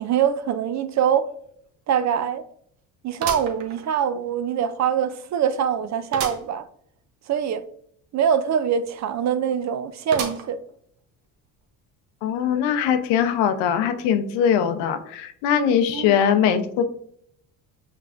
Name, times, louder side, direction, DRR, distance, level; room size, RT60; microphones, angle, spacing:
voice 1, 0.0-1.3 1.9-2.4 3.0-6.6 7.3-7.6 8.1-10.6 15.9-16.2, right 8 dB, 45° right, 0.4 m, -23 dB
sound 1, 1.0-1.1 1.5-1.6 3.2-4.3 4.8-4.9 6.1-6.5 7.0-7.1 7.2-7.3 10.1-10.7 11.3-11.4 12.4-12.5, right 6 dB, 90° right, 0.8 m, -32 dB
voice 2, 12.2-16.8, left 8 dB, 80° left, 0.7 m, -21 dB
5.8 x 3.1 x 2.5 m
supercardioid pair, 75°, 42 cm